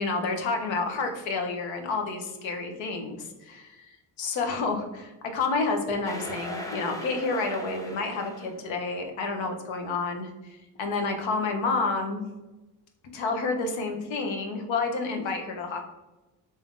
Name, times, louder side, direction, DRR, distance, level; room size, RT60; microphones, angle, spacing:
voice 1, 0.0-3.9 4.2-12.3 13.1-15.8, left 3 dB, 75° left, 4 dB, 0.8 m, -29 dB
sound 1, 6.0-8.6, left 1 dB, 5° left, 0.7 m, -39 dB
3.5 x 2.7 x 3.6 m, 1.1 s
supercardioid pair, 65°, 46 cm